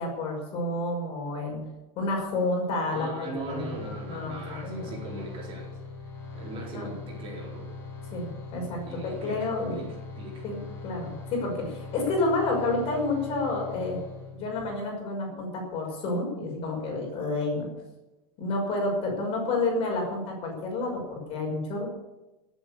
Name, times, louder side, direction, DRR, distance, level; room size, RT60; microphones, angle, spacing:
voice 1, 0.0-1.6 2.0-3.7 4.1-4.9 6.7-6.9 8.1-9.8 10.4-10.6 10.8-14.0 14.4-17.7 18.4-21.9, left 2 dB, 35° left, 0 dB, 5.9 m, -30 dB
voice 2, 2.8-5.7 6.3-7.8 8.9-9.8 10.2-10.4, right 2 dB, 30° right, -2 dB, 4.0 m, -39 dB
sound 1, 3.3-14.7, left 4 dB, 15° left, 6.0 m, -41 dB
18.0 x 8.1 x 8.4 m, 1.0 s
supercardioid pair, 175°, 18 cm